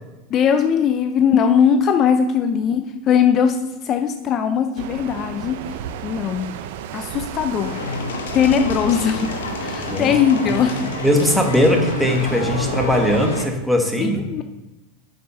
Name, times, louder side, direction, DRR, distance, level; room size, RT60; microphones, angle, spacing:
voice 1, 0.3-3.6 3.8-5.6 6.0-6.5 6.9-7.8 8.3-9.3 9.6-10.9 14.0-14.4, left 7 dB, 40° left, 8 dB, 0.5 m, -19 dB
sound 1, 4.8-13.5, right 9 dB, 70° right, 0.6 m, -32 dB
sound 2, 7.5-13.5, left 5 dB, 90° left, 0.9 m, -30 dB
voice 2, 9.8-10.2 10.4-10.6 11.0-14.2, left 1 dB, ahead, 2 dB, 1.4 m, -19 dB
7.8 x 5.4 x 5.6 m, 1.1 s
supercardioid pair, 120°, 0 cm